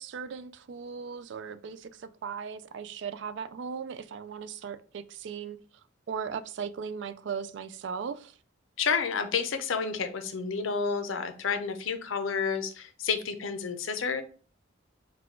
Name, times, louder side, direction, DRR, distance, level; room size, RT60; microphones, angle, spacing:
voice 1, 0.0-5.6 6.1-8.4, right 6 dB, 65° right, 0.3 m, -38 dB
voice 2, 8.8-14.2, left 5 dB, 85° left, 0.6 m, -30 dB
4.0 x 2.3 x 4.4 m
head